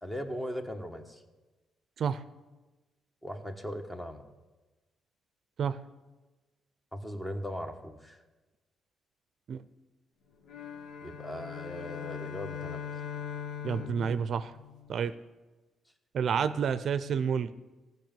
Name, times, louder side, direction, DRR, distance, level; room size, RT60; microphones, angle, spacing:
voice 1, 0.0-1.2 3.2-4.3 6.9-8.2 11.0-12.8, equal, 15° left, 6 dB, 1.3 m, -38 dB
sound 1, 10.4-15.1, left 8 dB, 80° left, 1.5 m, -41 dB
voice 2, 13.6-14.5 14.9-15.1 16.1-17.5, right 7 dB, 60° right, 13 dB, 0.5 m, -29 dB
15.0 x 5.4 x 9.1 m, 1.2 s
cardioid pair, 90°, 0 cm